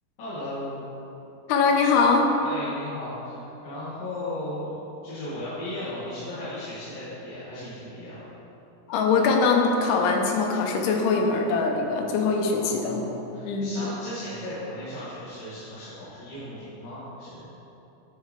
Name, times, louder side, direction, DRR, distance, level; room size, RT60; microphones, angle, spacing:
voice 1, 0.2-0.8 2.4-8.2 12.5-17.5, left 1 dB, 60° left, -14 dB, 3.1 m, -36 dB
voice 2, 1.5-2.3 8.9-13.0 13.4-13.9, left 4 dB, 90° left, 2 dB, 2.8 m, -22 dB
9.2 x 5.8 x 3.2 m, 2.9 s
omnidirectional pair, 4.6 m